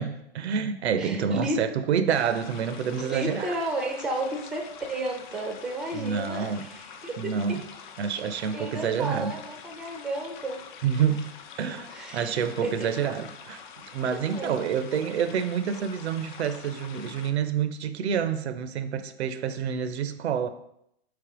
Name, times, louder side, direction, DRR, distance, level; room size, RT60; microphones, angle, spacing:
voice 1, 0.0-3.6 5.9-6.7 7.2-7.6 8.0-9.3 10.8-11.3 11.6-13.6 13.9-20.5, right 7 dB, 80° right, 0.5 m, -28 dB
voice 2, 1.0-1.6 3.0-7.6 8.2-10.7 11.9-12.9 14.1-14.6, right 1 dB, ahead, 0.5 m, -33 dB
sound 1, 2.1-17.3, left 7 dB, 50° left, 0.5 m, -46 dB
3.4 x 3.2 x 4.6 m
hypercardioid pair, 120°, 32 cm